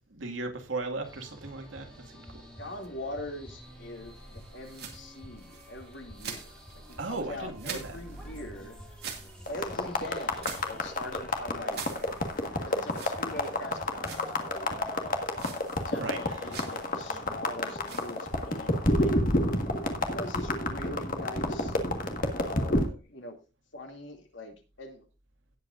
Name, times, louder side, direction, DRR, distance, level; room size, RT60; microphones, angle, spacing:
voice 1, 0.1-2.4 7.0-8.0 15.9-16.6, right 3 dB, 85° right, 4 dB, 2.1 m, -37 dB
sound 1, 1.0-17.9, equal, 5° left, 2.7 m, -48 dB
voice 2, 2.6-8.8 9.2-11.8 12.6-19.1 20.1-21.8 22.3-23.4 23.7-25.0, left 1 dB, 80° left, 3 dB, 2.6 m, -42 dB
sound 2, 3.6-20.9, right 6 dB, 55° right, 2.4 m, -47 dB
sound 3, 9.5-22.8, left 1 dB, 45° left, 1.7 m, -29 dB
18.0 x 8.2 x 2.6 m, 0.30 s
head